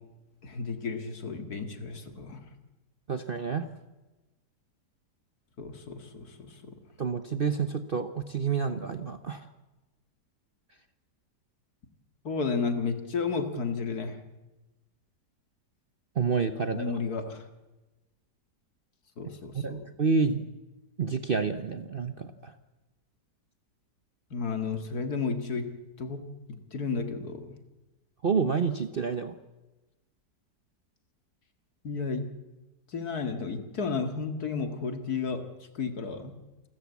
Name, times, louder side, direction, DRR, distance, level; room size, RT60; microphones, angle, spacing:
voice 1, 0.4-2.4 5.6-6.8 12.2-14.2 16.7-17.5 19.2-19.8 24.3-25.6 26.0-26.2 26.7-27.5 31.8-32.2 32.9-35.4 35.7-36.3, left 5 dB, 60° left, 7 dB, 2.4 m, -32 dB
voice 2, 3.1-3.6 7.0-9.5 16.1-16.9 19.2-20.4 21.0-22.5 28.2-29.3, right 5 dB, 40° right, 9 dB, 0.8 m, -29 dB
28.0 x 13.5 x 8.4 m, 1.1 s
omnidirectional pair, 1.8 m